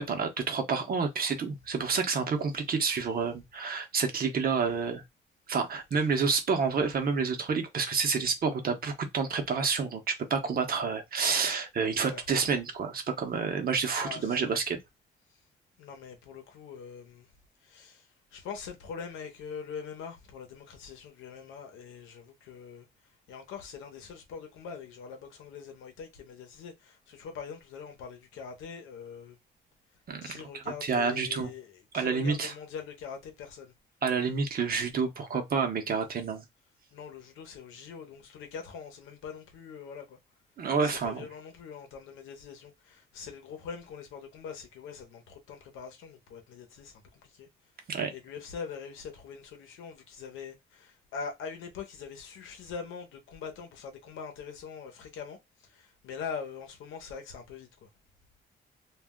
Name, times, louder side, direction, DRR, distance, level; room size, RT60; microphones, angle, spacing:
voice 1, 0.0-5.0 5.5-14.8 30.1-31.5 31.9-32.5 34.0-36.4 40.6-41.3 47.9-48.1, right 5 dB, 50° right, 0.8 m, -29 dB
voice 2, 11.9-12.3 14.0-14.6 15.8-17.3 17.6-22.9 23.3-29.4 30.2-33.7 36.9-40.2 40.8-47.5 48.1-57.9, left 6 dB, 90° left, 0.8 m, -43 dB
2.4 x 2.1 x 3.6 m
cardioid pair, 90°, 20 cm